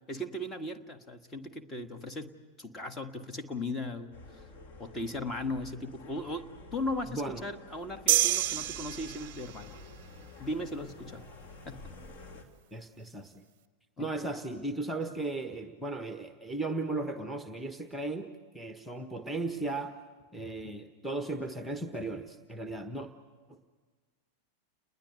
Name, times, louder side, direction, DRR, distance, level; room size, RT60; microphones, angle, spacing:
voice 1, 0.1-2.3 2.6-4.4 4.8-9.8 10.4-11.3 11.6-11.8 14.0-14.1, left 1 dB, 15° left, 6 dB, 1.7 m, -37 dB
sound 1, 4.1-12.4, left 3 dB, 45° left, 2.8 m, -50 dB
voice 2, 7.1-7.4 12.7-13.4 14.0-18.3 18.5-20.0 20.3-23.1 23.5-23.7, right 2 dB, 5° right, 7 dB, 1.3 m, -36 dB
sound 2, 8.1-9.6, right 13 dB, 45° right, 0.7 m, -28 dB
30.0 x 21.0 x 8.0 m, 1.5 s
figure-of-eight pair, 90°, 0 cm